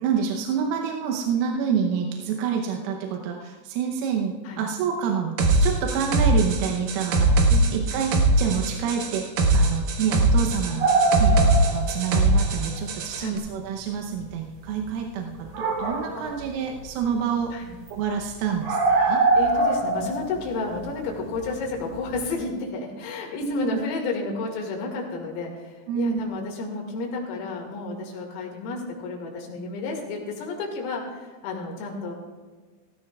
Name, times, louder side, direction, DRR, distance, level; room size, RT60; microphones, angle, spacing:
voice 1, 0.0-7.4 7.7-17.6 17.9-19.3 23.4-23.8 25.9-26.2, right 7 dB, 85° right, 2 dB, 3.6 m, -28 dB
sound 1, 5.4-13.2, right 2 dB, 70° right, 2.2 m, -21 dB
sound 2, 10.8-12.5 12.8-12.9 13.4-13.5 14.2-14.3 15.4-16.4 16.7-17.0 17.4-17.5 17.9-18.0 18.1-18.2 18.6-21.7 22.0-22.3, right 3 dB, 45° right, 3.0 m, -23 dB
voice 2, 19.4-32.1, left 3 dB, 85° left, 0 dB, 4.8 m, -31 dB
18.0 x 15.5 x 2.4 m, 1.4 s
omnidirectional pair, 5.8 m